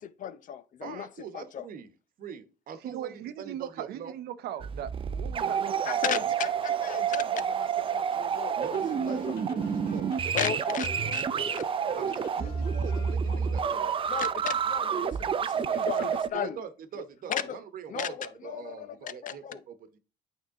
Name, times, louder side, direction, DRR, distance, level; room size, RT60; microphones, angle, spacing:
voice 1, 0.0-1.1 1.3-1.6 5.8-8.8 9.1-9.4 10.3-12.1 13.2-16.6 17.3-17.6 17.9-19.6, left 9 dB, 50° left, 0.7 m, -36 dB
voice 2, 0.8-1.9 2.2-4.1 8.6-10.6 11.0-11.5 11.9-13.9 15.7-20.0, right 7 dB, 55° right, 1.1 m, -43 dB
voice 3, 2.8-6.2, right 11 dB, 70° right, 0.7 m, -39 dB
sound 1, 4.6-16.3, right 7 dB, 30° right, 0.5 m, -29 dB
sound 2, 5.4-13.2, left 7 dB, 70° left, 1.1 m, -48 dB
8.9 x 3.6 x 3.7 m
cardioid pair, 110°, 17 cm